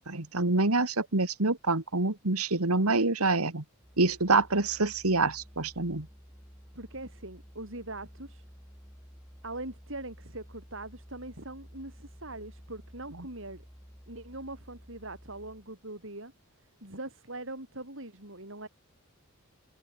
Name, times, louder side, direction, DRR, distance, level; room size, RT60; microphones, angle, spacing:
voice 1, 0.1-3.6 4.0-6.1, right 3 dB, 90° right, 2.5 m, -26 dB
Musical instrument, 3.8-15.8, equal, ahead, 7.1 m, -53 dB
voice 2, 6.8-8.4 9.4-13.6 14.1-16.3 16.8-18.7, right 2 dB, 60° right, 7.1 m, -42 dB
head